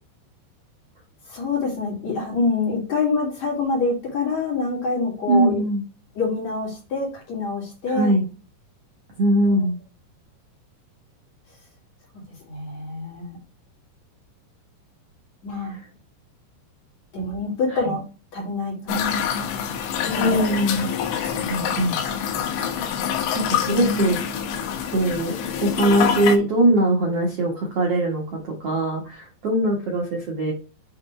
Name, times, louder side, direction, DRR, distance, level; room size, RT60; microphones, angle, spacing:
voice 1, 1.3-5.6 6.2-8.1 9.4-9.5 12.5-13.4 15.4-15.7 17.1-18.1 18.3-19.3 20.0-20.4 21.3-21.7, left 3 dB, 45° left, -3 dB, 3.0 m, -26 dB
voice 2, 5.3-5.8 7.9-8.2 9.2-9.8 15.6-15.9 17.7-17.8 20.2-20.9 21.5-22.0 22.5-22.9 23.3-24.2 24.8-25.3 25.6-30.5, right 1 dB, 75° right, -1 dB, 1.3 m, -22 dB
sound 1, 18.9-26.4, left 8 dB, 80° left, 3.1 m, -26 dB
8.5 x 3.2 x 4.3 m, 0.33 s
omnidirectional pair, 5.2 m